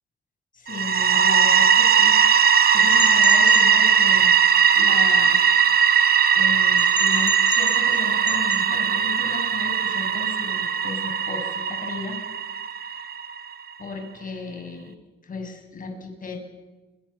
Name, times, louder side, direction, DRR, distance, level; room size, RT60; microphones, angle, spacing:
voice 1, 0.5-4.4 4.7-6.1 6.3-12.2 12.8-13.1 13.8-14.9 15.2-16.5, left 4 dB, 45° left, 5 dB, 7.5 m, -35 dB
sound 1, 0.7-13.4, right 7 dB, 50° right, 1.5 m, -19 dB
sound 2, 2.9-3.7 6.8-8.0 8.3-8.6, left 4 dB, 25° left, 2.6 m, -32 dB
28.5 x 23.0 x 7.2 m, 1.2 s
cardioid pair, 90°, 20 cm